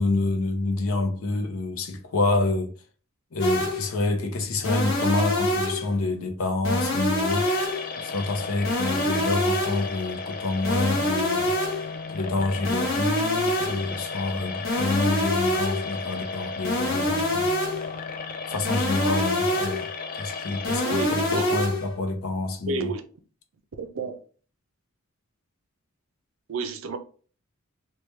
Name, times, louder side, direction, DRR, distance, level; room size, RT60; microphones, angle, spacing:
voice 1, 0.0-2.7 3.3-7.5 8.0-11.5 12.1-17.5 18.5-19.9 20.2-22.9, left 2 dB, 90° left, 0.6 m, -27 dB
sound 1, 3.4-3.9 4.6-5.9 6.6-7.9 8.6-9.9 10.6-11.9 12.6-13.9 14.6-15.9 16.6-17.9 18.6-19.9 20.6-21.9, left 1 dB, 60° left, 1.0 m, -26 dB
sound 2, 7.3-21.3, left 4 dB, 40° left, 0.4 m, -35 dB
voice 2, 20.8-21.6 22.7-23.0 23.8-24.2 26.5-27.0, right 3 dB, 70° right, 0.5 m, -30 dB
3.1 x 2.2 x 3.1 m
head